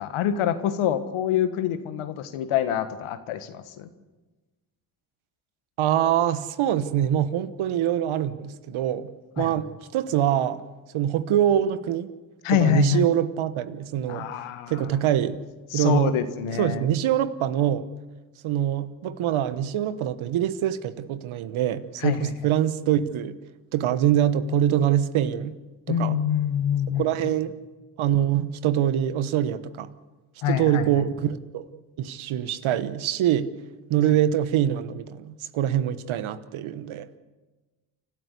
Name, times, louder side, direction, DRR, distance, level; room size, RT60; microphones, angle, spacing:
voice 1, 0.0-3.9 9.4-9.6 12.4-13.0 14.1-14.9 15.7-16.8 22.0-22.3 25.9-27.3 30.4-30.9, left 10 dB, 80° left, 1.6 m, -26 dB
voice 2, 5.8-10.6 10.9-12.1 12.5-14.3 14.7-15.4 15.7-16.1 16.6-17.8 18.4-23.4 23.7-25.5 25.9-26.2 26.9-27.5 28.0-29.9 30.5-31.7 32.0-33.5 33.9-37.1, right 11 dB, 75° right, 1.2 m, -24 dB
29.5 x 12.5 x 8.4 m
supercardioid pair, 50°, 49 cm